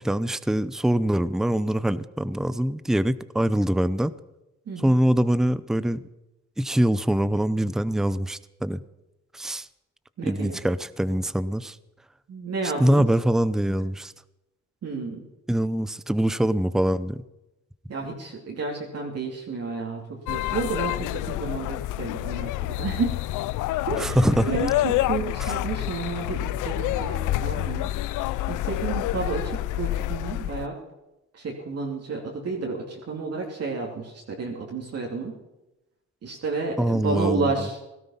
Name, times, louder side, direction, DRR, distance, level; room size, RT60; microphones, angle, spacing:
voice 1, 0.0-4.1 4.8-6.0 6.6-8.8 9.3-9.7 10.2-11.8 12.8-14.1 15.5-17.2 24.0-24.5 36.8-37.5, right 1 dB, ahead, 16 dB, 0.6 m, -23 dB
voice 2, 4.7-5.0 10.2-10.6 12.3-13.1 13.7-13.8 14.8-15.3 17.9-23.1 23.9-27.9 28.5-30.8 31.3-35.3 36.2-37.8, right 4 dB, 55° right, -2 dB, 2.8 m, -31 dB
sound 1, 20.3-30.6, left 15 dB, 85° left, 0.5 m, -28 dB
17.0 x 13.0 x 5.7 m, 0.96 s
cardioid pair, 90°, 30 cm